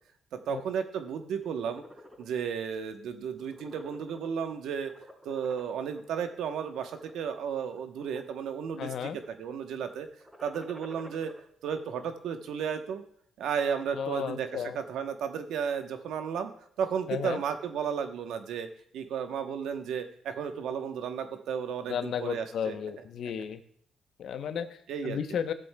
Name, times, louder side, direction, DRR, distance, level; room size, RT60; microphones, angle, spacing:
voice 1, 0.3-1.8 2.2-4.9 5.2-10.1 10.4-11.3 11.6-13.0 13.4-16.5 16.8-18.7 18.9-22.8 24.9-25.2, right 7 dB, 80° right, 7 dB, 0.9 m, -33 dB
sound 1, 1.3-2.2 2.7-2.9 3.2-4.5 4.9-6.0 6.6-7.1 7.7-8.4 8.7-9.2 10.1-11.4, left 1 dB, 10° right, 4.3 m, -50 dB
voice 2, 8.8-9.2 13.9-14.8 17.1-17.4 21.9-23.6 24.2-24.8 25.0-25.5, left 8 dB, 70° left, 9 dB, 0.7 m, -33 dB
14.5 x 7.7 x 2.2 m, 0.63 s
cardioid pair, 90°, 0 cm